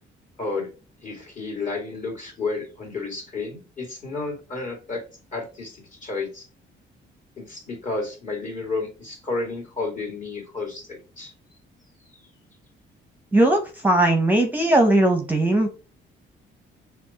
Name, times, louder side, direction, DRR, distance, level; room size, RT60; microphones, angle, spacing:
voice 1, 0.4-0.7 1.0-5.0 5.3-5.7 6.0-6.5 7.4-11.3, left 3 dB, 40° left, -1 dB, 2.2 m, -31 dB
voice 2, 13.3-15.7, right 1 dB, 10° right, 4 dB, 0.8 m, -19 dB
6.2 x 2.3 x 2.8 m, 0.34 s
cardioid pair, 90°, 20 cm